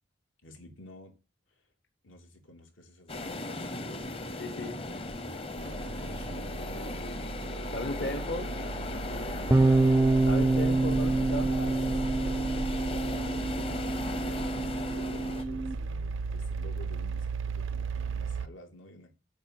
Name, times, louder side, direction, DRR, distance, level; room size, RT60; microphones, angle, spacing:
voice 1, 0.4-1.1 1.5-1.7 2.0-4.8 5.4-6.9 7.7-8.2 11.5-14.4 14.8-19.1, left 2 dB, 80° left, 3.2 m, -50 dB
sound 1, 3.1-15.4, left 2 dB, 30° left, 0.9 m, -37 dB
voice 2, 4.4-4.8 7.7-8.5 10.3-11.5, left 1 dB, 55° left, 1.1 m, -35 dB
sound 2, 5.6-18.5, right 4 dB, 80° right, 0.5 m, -36 dB
Bass guitar, 9.5-15.7, right 2 dB, 15° right, 0.4 m, -27 dB
8.5 x 5.4 x 7.8 m
head